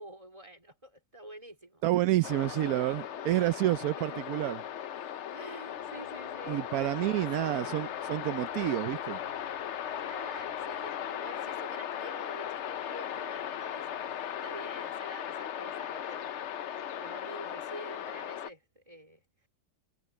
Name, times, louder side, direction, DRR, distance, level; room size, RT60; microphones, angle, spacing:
voice 1, 0.0-2.9 3.1-3.5 3.9-4.2 5.3-6.7 7.0-8.1 10.0-14.0 14.4-16.5 17.0-19.5, right 1 dB, 15° right, 4.0 m, -48 dB
voice 2, 1.8-4.6 6.5-9.2, right 15 dB, 75° right, 0.8 m, -29 dB
sound 1, 2.2-18.5, left 9 dB, 70° left, 0.6 m, -38 dB
sound 2, 5.7-15.0, right 2 dB, 45° right, 3.5 m, -63 dB
omnidirectional pair, 2.0 m